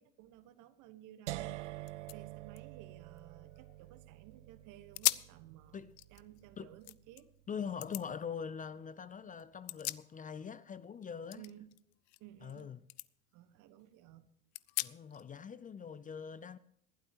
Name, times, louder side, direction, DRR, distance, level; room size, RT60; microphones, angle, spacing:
voice 1, 0.0-7.3 11.3-11.7 12.2-12.7 13.3-14.3, right 12 dB, 60° right, 1.4 m, -56 dB
sound 1, 1.3-7.2, right 17 dB, 80° right, 0.6 m, -47 dB
sound 2, 1.5-1.6 1.8-4.0 4.4-4.5 4.9-5.4 5.8-7.2 7.8-8.1 9.4-10.5 10.8-12.6 12.9-13.1 13.6-13.7 14.5-15.2, left 21 dB, 70° left, 0.6 m, -40 dB
voice 2, 7.5-11.4 12.4-12.8 14.8-16.6, left 7 dB, 25° left, 0.5 m, -43 dB
20.0 x 12.0 x 3.0 m
hypercardioid pair, 75°, 35 cm